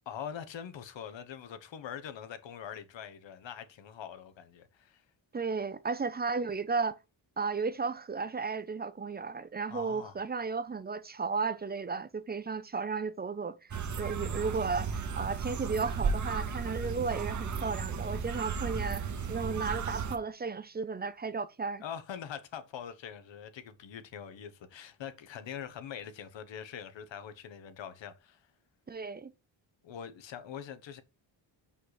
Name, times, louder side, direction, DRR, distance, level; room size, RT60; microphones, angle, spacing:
voice 1, 0.1-5.0 9.7-10.1 21.8-28.4 29.8-31.0, left 8 dB, 65° left, 1.1 m, -43 dB
voice 2, 5.3-7.0 7.4-13.6 14.0-21.8 28.9-29.3, right 4 dB, 20° right, 0.5 m, -34 dB
sound 1, 13.7-20.2, right 5 dB, 40° right, 0.9 m, -34 dB
5.6 x 4.9 x 4.1 m
cardioid pair, 100°, 47 cm